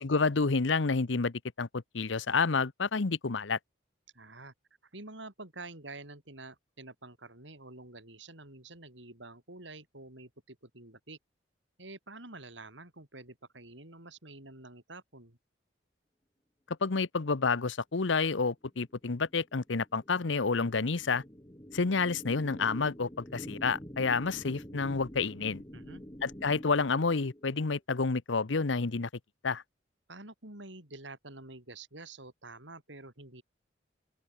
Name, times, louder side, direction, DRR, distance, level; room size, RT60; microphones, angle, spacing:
voice 1, 0.0-3.6 16.7-21.2 21.7-25.6 26.2-29.1 29.4-29.6, left 4 dB, 70° left, 0.9 m, -29 dB
voice 2, 4.1-4.5 4.9-11.2 11.8-15.4 25.7-26.0 30.1-33.4, right 2 dB, 65° right, 6.1 m, -48 dB
sound 1, 18.9-27.7, equal, 20° left, 5.4 m, -47 dB
open air
head